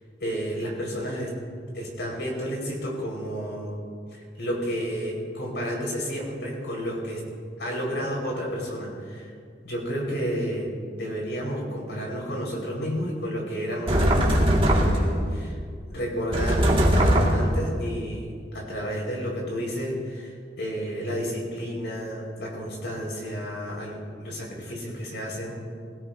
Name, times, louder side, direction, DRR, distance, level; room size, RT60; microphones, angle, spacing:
voice 1, 0.2-1.3 1.7-3.8 4.1-7.2 7.6-9.3 9.6-14.4 14.7-15.6 15.9-25.6, equal, 85° left, -3 dB, 4.7 m, -31 dB
sound 1, 13.9-15.2 16.3-17.6, equal, 30° right, 1.9 m, -20 dB
20.5 x 17.0 x 2.7 m, 2.1 s
head